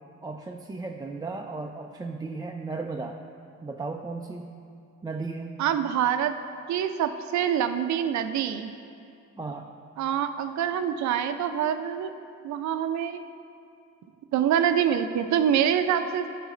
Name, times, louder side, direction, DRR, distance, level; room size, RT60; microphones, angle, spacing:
voice 1, 0.2-3.2 3.6-4.5 5.0-5.5 9.4-9.7, right 3 dB, 15° right, 1 dB, 0.3 m, -35 dB
voice 2, 5.6-6.3 6.7-8.7 10.0-12.1 12.4-13.2 14.3-16.3, right 9 dB, 65° right, 9 dB, 0.6 m, -25 dB
11.0 x 4.8 x 3.9 m, 2.4 s
cardioid pair, 90°, 30 cm